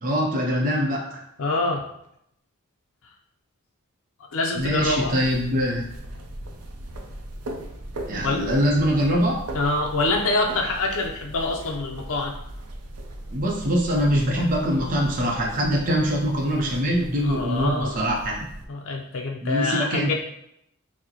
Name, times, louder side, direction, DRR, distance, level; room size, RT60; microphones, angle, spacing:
voice 1, 0.0-1.2 4.6-5.8 8.1-9.4 13.3-18.4 19.4-20.1, equal, 40° right, -2 dB, 0.6 m, -23 dB
voice 2, 1.4-1.8 4.3-5.1 8.2-8.4 9.5-12.3 17.2-18.0 18.7-20.1, left 2 dB, 60° left, 0 dB, 0.5 m, -25 dB
sound 1, 4.6-18.6, right 1 dB, 80° right, 0.5 m, -38 dB
6.0 x 2.1 x 2.9 m, 0.75 s
head